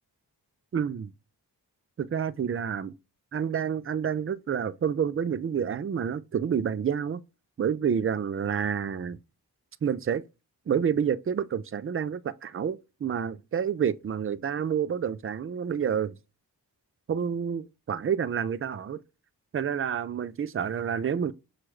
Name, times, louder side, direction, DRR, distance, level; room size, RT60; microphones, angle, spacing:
voice 1, 0.7-1.1 2.0-2.9 3.3-7.2 7.6-9.2 9.8-10.2 10.7-16.2 17.1-19.0 19.5-21.3, right 7 dB, 35° right, 0.4 m, -29 dB
6.0 x 2.4 x 3.1 m
cardioid pair, 45°, 40 cm